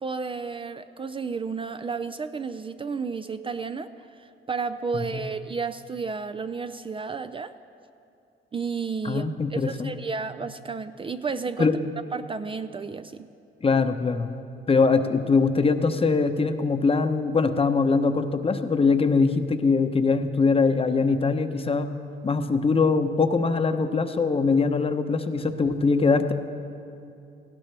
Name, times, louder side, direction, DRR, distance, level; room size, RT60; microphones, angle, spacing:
voice 1, 0.0-3.9 4.2-7.5 8.5-9.2 9.5-11.7 12.1-13.3, right 5 dB, 25° right, 10 dB, 0.4 m, -32 dB
voice 2, 4.9-5.3 9.0-9.9 11.6-11.8 13.6-14.3 14.7-21.9 22.2-26.3, left 4 dB, 30° left, 9 dB, 0.8 m, -22 dB
18.5 x 16.0 x 3.3 m, 2.7 s
cardioid pair, 90°, 20 cm